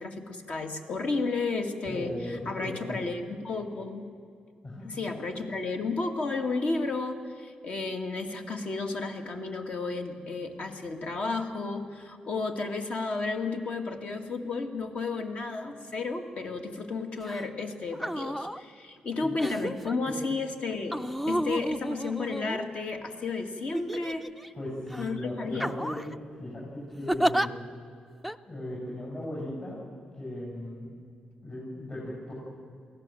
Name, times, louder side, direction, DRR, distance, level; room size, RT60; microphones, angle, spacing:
voice 1, 0.0-4.1 4.8-24.3 25.0-25.7, left 3 dB, 55° left, 4 dB, 2.2 m, -33 dB
voice 2, 1.9-3.0 4.6-5.0 19.2-19.3 20.1-20.2 24.5-26.0 26.4-27.6 28.5-29.8 30.2-30.9 31.4-32.3, left 1 dB, 40° left, -6 dB, 7.3 m, -37 dB
sound 1, 17.2-17.4 17.9-18.6 19.4-19.9 20.9-23.0 23.7-24.5 24.9-25.1 25.6-26.2 27.1-27.5 28.2-28.4, equal, 5° left, 0.6 m, -31 dB
23.5 x 16.5 x 7.8 m, 2.4 s
cardioid pair, 105°, 3 cm